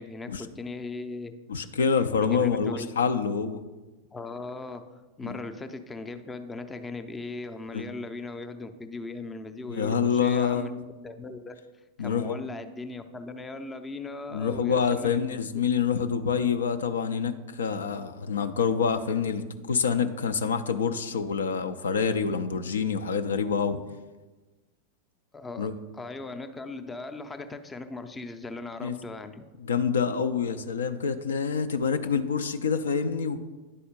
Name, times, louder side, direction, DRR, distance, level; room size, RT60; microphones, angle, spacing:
voice 1, 0.0-1.3 2.2-2.9 4.1-11.6 12.0-15.7 25.3-29.4, left 3 dB, 15° left, 8 dB, 0.5 m, -38 dB
voice 2, 1.5-3.6 5.2-5.4 7.7-7.8 9.7-10.7 12.0-12.4 14.3-23.8 25.6-25.7 28.8-28.9 29.6-33.4, left 6 dB, 65° left, 9 dB, 0.4 m, -27 dB
10.0 x 4.2 x 5.2 m, 1.2 s
figure-of-eight pair, 90°, 0 cm